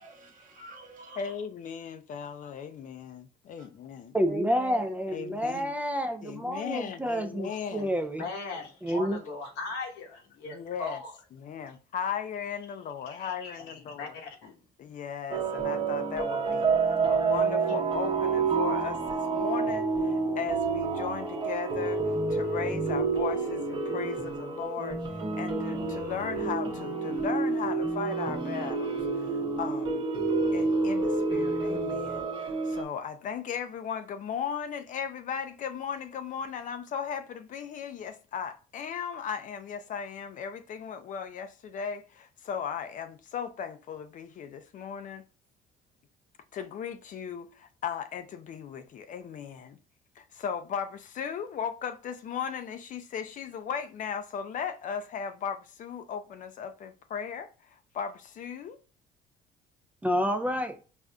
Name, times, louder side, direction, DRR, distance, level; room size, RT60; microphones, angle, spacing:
voice 1, 0.0-1.3 3.6-3.7 4.2-5.0, right 2 dB, 50° right, 1.0 m, -42 dB
voice 2, 1.2-4.2 5.1-5.7 6.2-7.9 10.5-11.0 11.3-14.2 14.8-30.1 30.5-45.2 46.5-49.8 50.2-58.8, left 7 dB, 50° left, 0.5 m, -37 dB
voice 3, 4.1-8.2 8.8-9.2 60.0-60.8, equal, 10° right, 0.3 m, -29 dB
voice 4, 8.2-11.1 13.1-14.6, left 3 dB, 90° left, 1.0 m, -39 dB
sound 1, 15.3-32.8, right 4 dB, 25° right, 0.8 m, -29 dB
4.9 x 2.5 x 2.2 m
cardioid pair, 110°, 17 cm